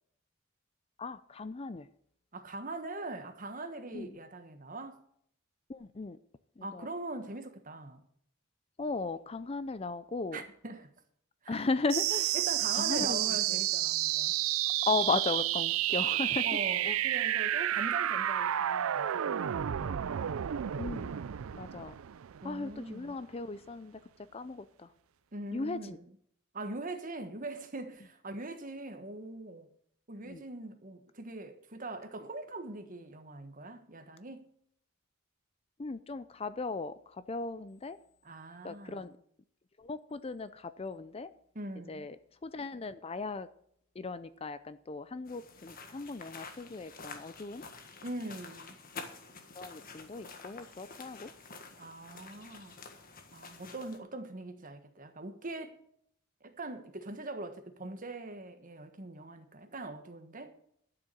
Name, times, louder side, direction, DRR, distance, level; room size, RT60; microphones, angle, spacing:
voice 1, 1.0-1.9 3.9-4.2 5.7-6.2 6.6-6.9 8.8-10.4 11.5-12.4 12.7-13.6 14.8-16.5 16.8-17.0 20.8-21.2 21.5-22.0 22.4-24.0 24.3-24.9 25.5-26.0 30.3-30.4 35.8-38.0 38.6-39.2 39.8-41.3 41.9-43.5 43.9-47.7 49.0-49.1 49.5-51.3, left 3 dB, 30° left, 0.5 m, -37 dB
voice 2, 2.3-5.0 6.6-8.0 10.3-10.9 11.4-11.6 12.3-14.4 16.4-20.0 22.4-23.1 25.3-26.0 26.5-29.7 30.1-34.5 38.2-39.1 41.5-42.1 48.0-48.8 51.8-52.8 53.3-55.8 56.4-60.5, right 2 dB, 40° right, 1.4 m, -42 dB
sound 1, 11.9-22.9, right 12 dB, 80° right, 0.4 m, -31 dB
sound 2, 45.3-54.0, left 4 dB, 45° left, 1.6 m, -49 dB
12.0 x 6.8 x 7.8 m
head